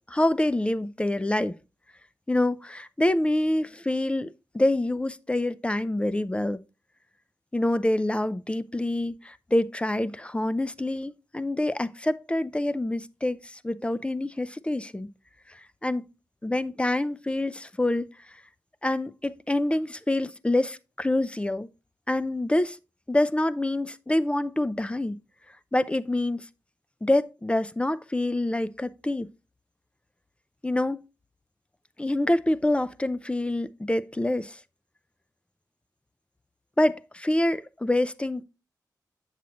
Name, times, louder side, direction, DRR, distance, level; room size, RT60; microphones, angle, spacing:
voice 1, 0.1-1.6 2.3-6.6 7.5-15.1 15.5-16.1 16.4-18.4 18.8-21.7 22.1-22.8 23.1-25.2 25.7-26.5 27.0-29.3 30.6-31.0 32.0-34.6 36.8-38.4, left 1 dB, 15° left, 0.5 m, -26 dB
7.3 x 7.1 x 2.9 m
cardioid pair, 55°, 7 cm